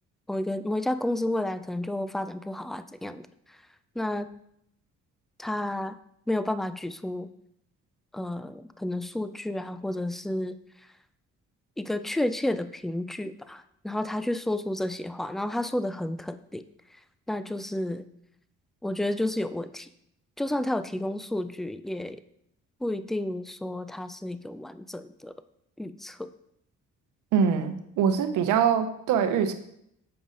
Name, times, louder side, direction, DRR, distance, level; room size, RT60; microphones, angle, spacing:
voice 1, 0.3-3.6 4.0-4.3 5.4-6.0 6.3-7.3 8.1-10.6 11.8-16.6 17.3-18.1 18.8-19.9 20.4-22.2 22.8-25.4 25.8-26.3, left 1 dB, ahead, 12 dB, 0.3 m, -31 dB
voice 2, 27.3-29.5, right 7 dB, 90° right, 9 dB, 0.7 m, -23 dB
7.8 x 5.1 x 3.8 m, 0.74 s
cardioid pair, 90°, 30 cm